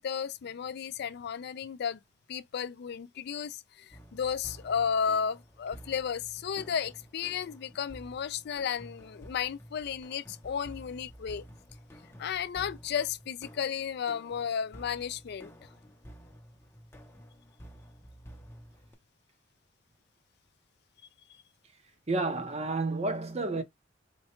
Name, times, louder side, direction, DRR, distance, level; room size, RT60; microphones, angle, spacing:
voice 1, 0.0-2.0 2.3-11.4 12.2-15.5, left 7 dB, 55° left, 0.3 m, -33 dB
sound 1, 3.9-18.9, equal, 10° left, 0.7 m, -51 dB
voice 2, 22.1-23.6, right 3 dB, 35° right, 0.8 m, -30 dB
4.4 x 2.2 x 2.8 m
head